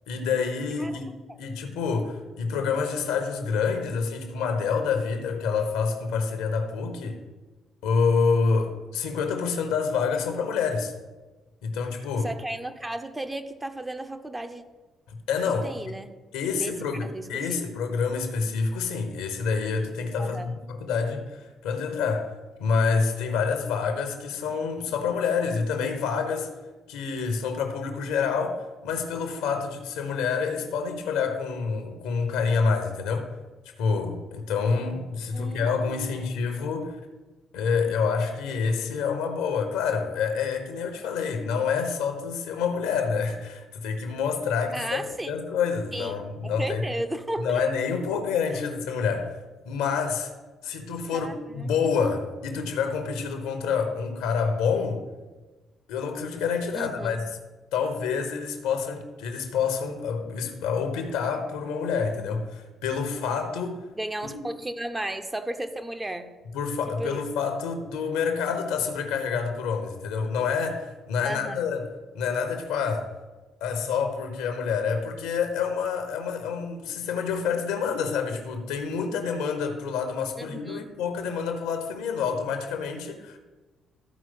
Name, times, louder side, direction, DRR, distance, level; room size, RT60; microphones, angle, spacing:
voice 1, 0.1-1.0 1.4-7.2 7.8-10.9 11.6-12.3 15.1-15.7 16.3-22.3 22.6-26.5 26.9-33.3 33.8-37.0 37.5-46.8 47.4-49.4 49.6-50.3 50.6-55.0 55.9-57.2 57.7-63.9 64.2-64.4 66.5-73.1 73.6-83.4, left 5 dB, 70° left, 1.0 m, -27 dB
voice 2, 12.2-14.6 15.6-16.2 16.5-16.8 17.0-17.7 20.2-20.5 35.3-36.3 44.7-45.3 45.9-46.2 46.4-47.6 51.1-51.7 56.7-57.2 64.0-66.3 67.0-67.2 71.2-71.6 80.4-80.9, right 1 dB, 15° right, 0.8 m, -34 dB
13.5 x 4.7 x 3.9 m
figure-of-eight pair, 45°, 0 cm